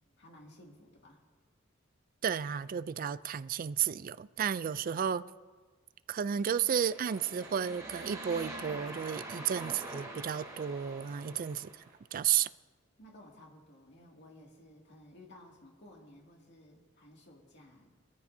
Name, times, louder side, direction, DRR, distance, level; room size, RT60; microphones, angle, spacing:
voice 1, 0.2-1.2 4.8-5.0 11.2-11.5 13.0-17.9, left 1 dB, 60° left, 2.3 m, -56 dB
voice 2, 2.2-5.2 6.1-11.7 12.1-12.5, right 8 dB, 45° right, 0.3 m, -32 dB
sound 1, 6.5-11.9, right 2 dB, 20° right, 2.8 m, -45 dB
22.0 x 13.5 x 2.7 m
head